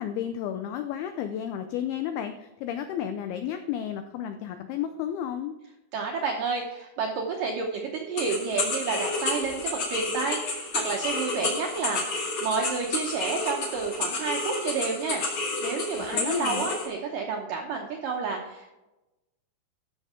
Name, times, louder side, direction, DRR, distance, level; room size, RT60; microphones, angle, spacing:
voice 1, 0.0-5.6 16.1-16.7, left 10 dB, 85° left, 8 dB, 2.2 m, -32 dB
voice 2, 5.9-18.7, right 5 dB, 80° right, 1 dB, 1.9 m, -30 dB
sound 1, 8.2-16.9, left 3 dB, 45° left, 2.5 m, -30 dB
13.5 x 6.4 x 3.7 m, 1.0 s
omnidirectional pair, 5.1 m